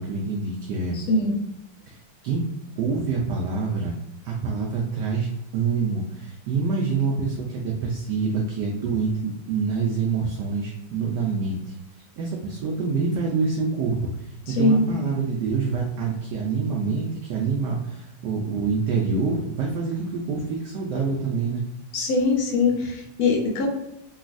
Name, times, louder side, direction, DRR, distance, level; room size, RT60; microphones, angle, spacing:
voice 1, 0.0-1.0 1.9-2.0 2.2-2.5 2.8-3.9 4.2-11.7 12.2-14.1 14.5-21.6, right 4 dB, 75° right, -1 dB, 1.0 m, -26 dB
voice 2, 0.9-1.3 14.5-14.9 21.9-23.7, left 3 dB, 85° left, 0 dB, 1.6 m, -22 dB
4.0 x 2.3 x 2.5 m, 0.86 s
omnidirectional pair, 2.3 m